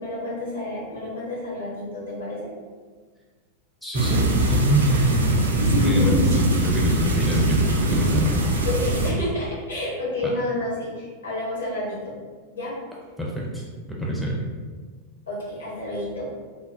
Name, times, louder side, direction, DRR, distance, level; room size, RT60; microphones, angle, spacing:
voice 1, 0.0-2.5 5.7-6.4 8.6-12.2 12.5-12.7 15.3-16.2, left 2 dB, 75° left, -6 dB, 1.0 m, -29 dB
voice 2, 3.8-6.2 6.6-8.5 10.2-10.3 13.2-13.6 14.0-14.4, right 2 dB, 5° left, -4 dB, 0.4 m, -24 dB
sound 1, 3.9-9.1, right 1 dB, 70° right, 0.3 m, -22 dB
3.0 x 2.0 x 2.5 m, 1.5 s
figure-of-eight pair, 90°, 0 cm